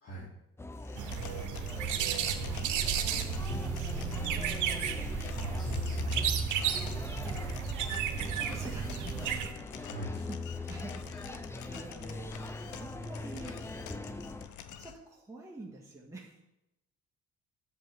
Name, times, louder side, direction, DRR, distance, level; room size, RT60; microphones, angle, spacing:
voice 1, 0.0-0.3 5.3-6.3 9.8-10.2, right 1 dB, 50° left, -6 dB, 2.7 m, -41 dB
sound 1, 0.6-14.5, left 2 dB, 10° left, 0.5 m, -40 dB
sound 2, 0.8-14.9, left 9 dB, 75° left, 0.8 m, -48 dB
sound 3, 1.0-9.5, right 8 dB, 80° right, 1.0 m, -33 dB
voice 2, 2.2-4.8 6.7-7.8 8.1-12.4 12.8-13.6 14.8-16.4, right 2 dB, 10° right, -4 dB, 1.7 m, -49 dB
11.5 x 7.4 x 3.5 m, 0.91 s
cardioid pair, 90°, 30 cm